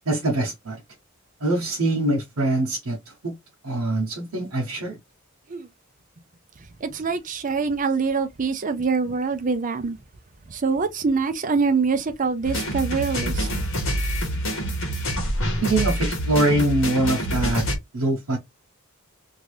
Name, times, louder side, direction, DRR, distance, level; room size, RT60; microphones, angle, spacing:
voice 1, 0.1-0.8 1.4-3.0 3.2-3.3 3.6-5.0 15.6-17.7 17.9-18.4, right 2 dB, 90° right, 0.9 m, -23 dB
voice 2, 6.8-10.0 10.5-13.5, right 4 dB, 35° right, 0.5 m, -24 dB
sound 1, 12.4-17.8, equal, 65° left, 1.1 m, -26 dB
2.8 x 2.5 x 3.1 m
head